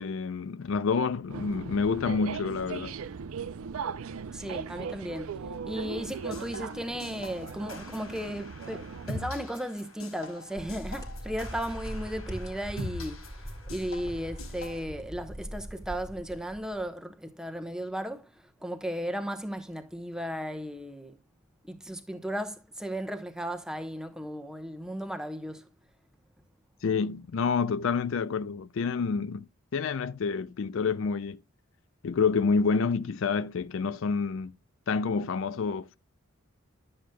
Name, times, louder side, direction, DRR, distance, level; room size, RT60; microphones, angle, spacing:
voice 1, 0.0-2.9 26.8-29.4 29.7-31.4 32.0-34.5 34.9-36.0, left 5 dB, 65° left, 0.4 m, -28 dB
sound 1, 1.3-9.3, right 6 dB, 75° right, 0.5 m, -39 dB
voice 2, 4.3-13.3 13.7-21.2 21.7-25.7, equal, 5° right, 0.9 m, -35 dB
sound 2, 6.0-14.8, left 2 dB, 80° left, 4.0 m, -43 dB
sound 3, 10.6-16.9, equal, 15° left, 1.5 m, -41 dB
12.0 x 7.7 x 2.2 m
head